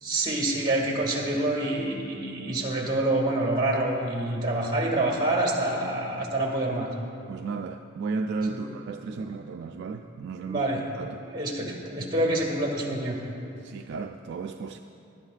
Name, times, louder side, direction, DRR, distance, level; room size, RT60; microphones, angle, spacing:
voice 1, 0.0-6.9 8.5-8.7 9.1-9.3 10.5-10.8 11.2-13.2, right 1 dB, 20° right, -2 dB, 1.9 m, -27 dB
voice 2, 7.3-10.6 11.0-11.3 13.6-14.8, right 4 dB, 55° right, 5 dB, 0.3 m, -34 dB
18.5 x 11.5 x 2.4 m, 2.6 s
head